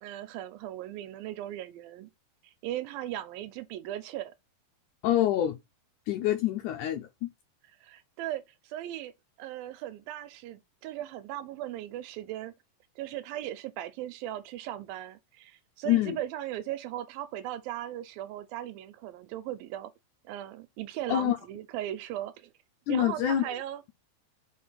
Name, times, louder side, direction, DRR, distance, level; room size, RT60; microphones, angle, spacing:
voice 1, 0.0-2.1 2.4-4.3 7.8-9.1 9.4-12.5 13.0-19.9 20.2-22.5 22.9-23.8, right 13 dB, 85° right, 2.5 m, -38 dB
voice 2, 5.0-5.6 6.1-7.3 15.9-16.2 21.1-21.4 22.9-23.4, left 12 dB, 80° left, 1.8 m, -26 dB
5.1 x 4.2 x 5.6 m
omnidirectional pair, 4.2 m